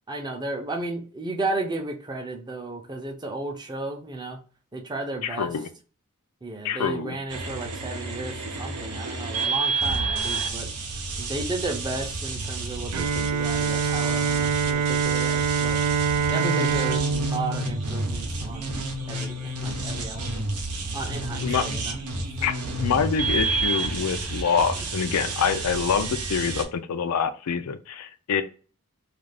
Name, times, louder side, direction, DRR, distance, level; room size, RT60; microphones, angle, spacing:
voice 1, 0.1-4.4 4.7-5.5 6.4-10.7 11.2-15.8 16.3-18.7 19.1-20.5 20.9-22.0, right 2 dB, 20° right, 3 dB, 0.5 m, -33 dB
voice 2, 5.2-5.7 6.6-7.2 21.4-21.7 22.4-22.5 22.8-28.4, left 6 dB, 80° left, 10 dB, 0.4 m, -26 dB
sound 1, 7.3-26.6, right 3 dB, 85° right, 0.7 m, -30 dB
Bowed string instrument, 12.9-18.8, right 5 dB, 70° right, 0.3 m, -25 dB
2.4 x 2.4 x 3.3 m, 0.39 s
head